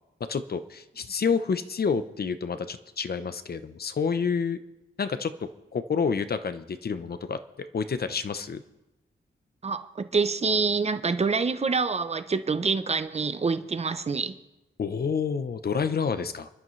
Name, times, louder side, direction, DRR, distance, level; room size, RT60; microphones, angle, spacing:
voice 1, 0.3-4.6 5.0-7.4 7.7-8.6 14.8-16.5, left 5 dB, 50° left, 11 dB, 0.7 m, -29 dB
voice 2, 9.6-14.3, right 4 dB, 30° right, 11 dB, 0.6 m, -26 dB
29.5 x 11.5 x 3.2 m, 1.0 s
wide cardioid pair, 170°, 21 cm